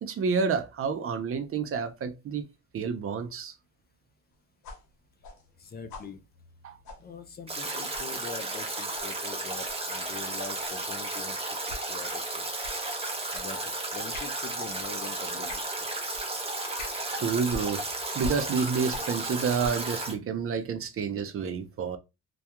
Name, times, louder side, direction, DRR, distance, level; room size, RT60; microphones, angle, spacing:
voice 1, 0.0-2.5 2.7-3.5 6.6-6.8 17.1-17.8 18.1-22.0, right 5 dB, 45° right, 0.5 m, -29 dB
sound 1, 4.6-7.7 7.9-8.2 8.9-9.1 9.6-9.8 10.6-10.9 11.7-11.9 12.6-12.9 13.3-13.5 14.1-14.4 14.8-15.0 15.5-15.7 16.1-16.3 16.8-17.0 17.5-19.2 19.5-19.9, left 2 dB, 75° left, 0.8 m, -43 dB
voice 2, 5.6-6.2 7.0-11.6 11.9-12.5 13.3-15.9, left 5 dB, 35° left, 0.4 m, -43 dB
Stream / Drip / Trickle dribble, 7.5-20.1, right 2 dB, 20° right, 0.8 m, -33 dB
2.2 x 2.2 x 2.8 m
cardioid pair, 90°, 30 cm